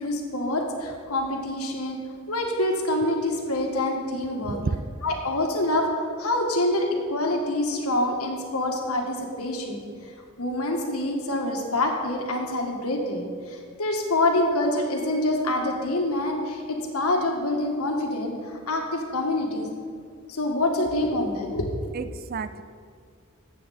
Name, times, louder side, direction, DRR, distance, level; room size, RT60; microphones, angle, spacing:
voice 1, 0.0-2.0 2.3-4.6 5.0-9.8 10.4-19.7 20.3-21.7, left 1 dB, 85° left, 2 dB, 1.7 m, -26 dB
voice 2, 4.4-4.9 21.9-22.6, right 4 dB, 45° right, 13 dB, 0.4 m, -30 dB
13.5 x 8.4 x 4.2 m, 2.1 s
head